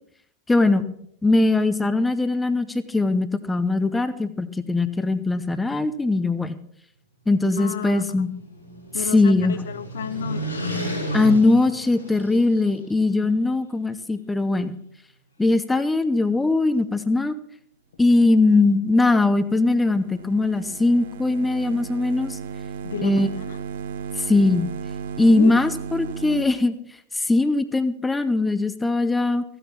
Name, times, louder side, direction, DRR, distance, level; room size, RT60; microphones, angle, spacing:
voice 1, 0.5-0.8 1.2-6.6 7.3-8.3 9.1-9.6 11.1-14.8 15.4-17.4 18.0-22.4 23.0-23.3 24.2-24.7 25.2-26.7 27.1-29.4, left 2 dB, 10° left, 12 dB, 0.8 m, -20 dB
voice 2, 7.6-8.0 8.9-10.9 22.8-23.6 25.3-25.5, left 8 dB, 65° left, 12 dB, 0.8 m, -31 dB
sound 1, 8.1-12.7, right 1 dB, 80° left, 5.0 m, -32 dB
sound 2, 18.8-26.4, right 5 dB, 60° right, 0.9 m, -35 dB
14.5 x 9.2 x 5.9 m, 0.68 s
figure-of-eight pair, 90°, 0 cm